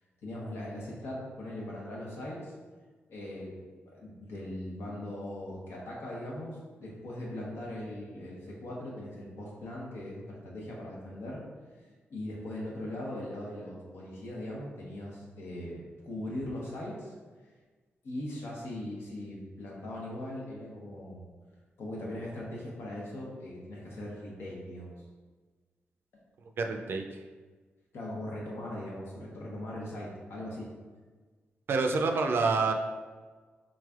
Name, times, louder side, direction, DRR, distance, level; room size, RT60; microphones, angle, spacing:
voice 1, 0.2-2.5 3.1-3.6 3.8-11.4 12.1-17.1 18.0-21.2 21.8-24.9 27.9-30.7, left 1 dB, 80° left, -4 dB, 1.0 m, -40 dB
voice 2, 26.6-27.1 31.7-32.7, right 4 dB, 60° right, 4 dB, 0.4 m, -27 dB
3.9 x 3.2 x 2.4 m, 1.4 s
cardioid pair, 85°, 4 cm